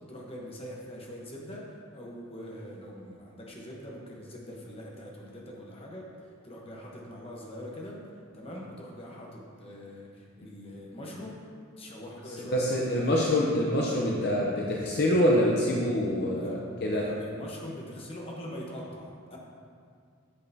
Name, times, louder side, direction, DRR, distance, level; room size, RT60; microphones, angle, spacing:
voice 1, 0.1-6.1 6.4-8.0 8.3-11.4 11.8-13.3 16.4-16.6 16.9-19.4, equal, 25° left, -3 dB, 0.9 m, -42 dB
voice 2, 12.4-17.1, left 1 dB, 50° left, -3 dB, 0.6 m, -26 dB
8.8 x 6.4 x 2.7 m, 2.2 s
head